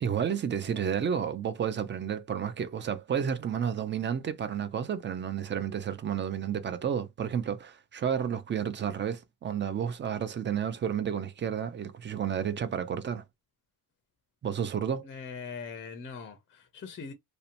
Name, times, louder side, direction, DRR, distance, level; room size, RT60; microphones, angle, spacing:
voice 1, 0.0-13.2 14.4-15.1, right 8 dB, 30° right, 0.3 m, -31 dB
voice 2, 15.0-17.1, left 5 dB, 30° left, 0.5 m, -41 dB
2.8 x 2.1 x 2.5 m
cardioid pair, 130°, 42 cm